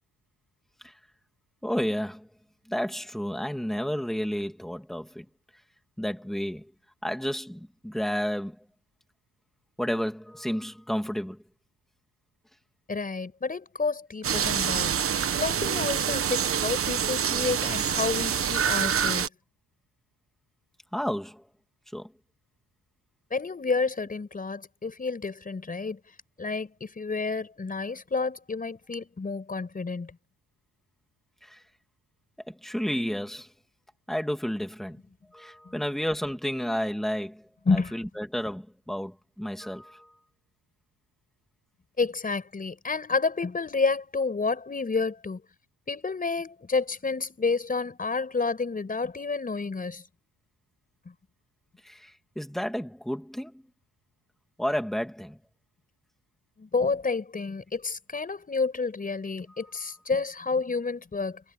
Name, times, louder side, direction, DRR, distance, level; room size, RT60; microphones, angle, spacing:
voice 1, 1.6-2.3 2.7-5.2 6.0-6.7 7.0-8.6 9.8-11.4 20.9-21.4 21.9-22.1 31.4-31.6 32.5-33.5 34.1-35.0 35.3-37.5 37.7-40.1 51.8-53.5 54.6-55.4, equal, ahead, 2.5 m, -31 dB
voice 2, 12.9-14.9 15.4-19.3 23.3-26.0 26.4-30.2 35.6-35.8 37.7-37.9 42.0-45.4 45.9-50.0 51.1-51.2 56.6-61.4, left 4 dB, 25° left, 5.7 m, -30 dB
sound 1, 14.2-19.3, right 8 dB, 40° right, 1.1 m, -26 dB
cardioid pair, 140°, 33 cm